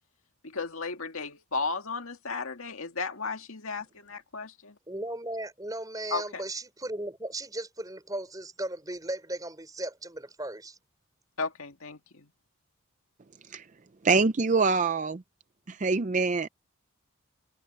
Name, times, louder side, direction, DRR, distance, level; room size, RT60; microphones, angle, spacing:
voice 1, 0.4-4.8 6.1-6.4 11.4-12.3, left 4 dB, 75° left, 2.0 m, -34 dB
voice 2, 4.9-10.8, right 1 dB, 15° right, 4.4 m, -36 dB
voice 3, 14.0-15.2 15.7-16.5, right 4 dB, 35° right, 0.5 m, -25 dB
head